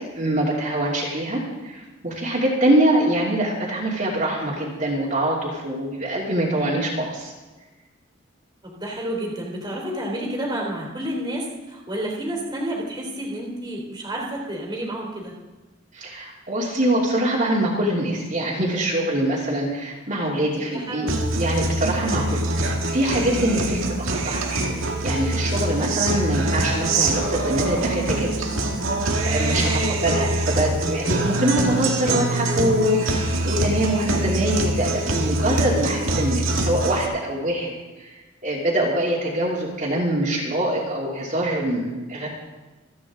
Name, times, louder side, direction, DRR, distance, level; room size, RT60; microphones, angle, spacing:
voice 1, 0.1-7.3 15.9-28.6 29.2-38.1 38.4-42.3, right 1 dB, 40° right, -6 dB, 2.8 m, -24 dB
voice 2, 8.6-15.3 20.7-21.1 29.5-29.9, right 1 dB, 20° right, -2 dB, 3.2 m, -30 dB
Guitar, 21.1-37.1, right 2 dB, 80° right, 1.9 m, -24 dB
27.5 x 9.6 x 3.7 m, 1.2 s
head